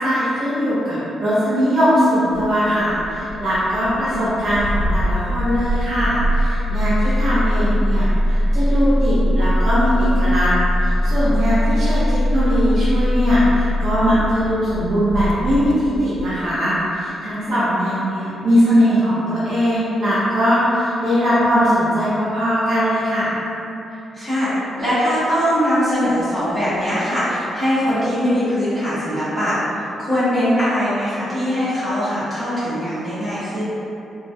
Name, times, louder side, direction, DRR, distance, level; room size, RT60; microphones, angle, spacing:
voice 1, 0.0-10.5 10.8-23.3, equal, 50° right, -11 dB, 0.6 m, -20 dB
Engine starting, 2.3-16.4, equal, 85° left, 0.3 m, -21 dB
voice 2, 3.7-4.2 7.0-7.1 24.1-24.5 24.8-33.6, equal, 10° right, -14 dB, 1.3 m, -21 dB
2.9 x 2.4 x 2.6 m, 2.8 s
wide cardioid pair, 170°, 0 cm